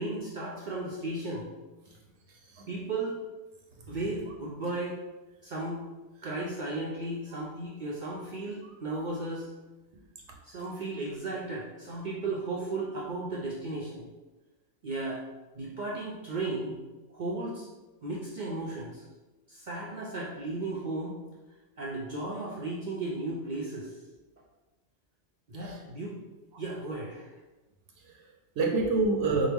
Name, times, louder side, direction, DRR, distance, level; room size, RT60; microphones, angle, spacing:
voice 1, 0.0-1.5 2.7-3.2 3.9-5.0 5.4-5.8 6.2-9.5 10.4-14.1 14.8-15.2 15.5-16.8 17.1-17.7 18.0-19.0 19.5-21.1 21.8-24.0 25.5-26.1 26.6-27.3, right 2 dB, 55° right, -4 dB, 0.5 m, -35 dB
voice 2, 2.3-2.7 3.8-4.0 7.3-7.4 25.6-25.8 28.0-29.5, right 3 dB, 70° right, 0 dB, 0.9 m, -29 dB
4.5 x 2.2 x 3.4 m, 1.1 s
omnidirectional pair, 1.3 m